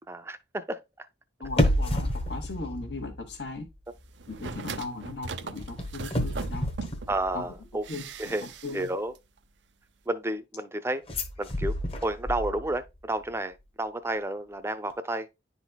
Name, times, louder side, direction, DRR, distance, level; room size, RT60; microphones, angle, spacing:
voice 1, 0.1-1.1 7.1-7.9 8.2-8.5 8.7-9.2 10.1-11.0 11.4-11.7 12.0-15.3, right 1 dB, 15° right, 0.5 m, -31 dB
voice 2, 1.4-3.6 4.3-6.7 7.3-7.4 7.9-8.3 8.6-8.9, left 3 dB, 70° left, 1.1 m, -37 dB
sound 1, 1.4-3.7 4.0-4.3 5.6-7.8 11.1-13.0 13.3-13.4, equal, 30° left, 1.0 m, -30 dB
sound 2, 4.2-7.2 7.8-8.9 9.1-9.2, right 4 dB, 80° right, 0.5 m, -39 dB
10.5 x 4.1 x 2.2 m
head